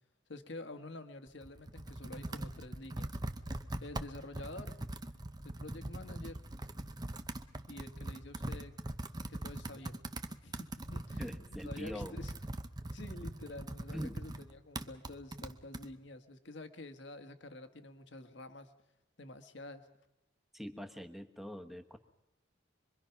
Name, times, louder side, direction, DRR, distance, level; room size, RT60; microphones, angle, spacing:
voice 1, 0.3-3.2 3.8-4.7 5.4-6.4 7.7-8.7 9.3-10.0 10.4-11.4 11.6-12.3 12.9-18.7 19.2-19.9, left 2 dB, 65° left, 8 dB, 1.6 m, -48 dB
Computer keyboard, 1.3-15.9, right 1 dB, 20° right, 0.9 m, -42 dB
voice 2, 11.2-12.2 13.9-14.2 20.5-22.0, equal, ahead, 7 dB, 1.2 m, -43 dB
25.5 x 22.5 x 5.9 m, 0.98 s
head